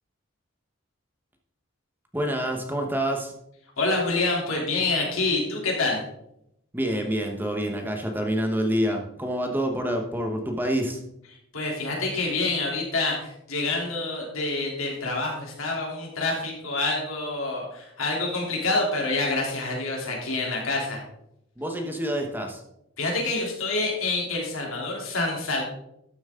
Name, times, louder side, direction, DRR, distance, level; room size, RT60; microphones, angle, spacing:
voice 1, 2.1-3.3 6.7-11.0 21.6-22.6, equal, 10° right, 3 dB, 1.1 m, -27 dB
voice 2, 3.8-6.0 11.5-21.0 23.0-25.6, left 3 dB, 85° left, -1 dB, 3.3 m, -27 dB
12.5 x 7.2 x 3.7 m, 0.79 s
head